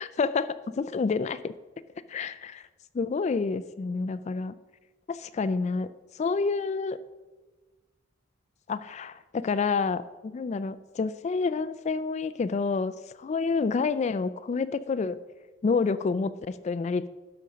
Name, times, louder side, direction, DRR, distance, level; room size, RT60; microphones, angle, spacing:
voice 1, 0.0-1.5 2.1-2.6 2.9-4.5 5.1-7.0 8.7-15.2 15.6-17.1, left 4 dB, 35° left, 13 dB, 0.3 m, -28 dB
12.5 x 5.1 x 6.2 m, 1.2 s
head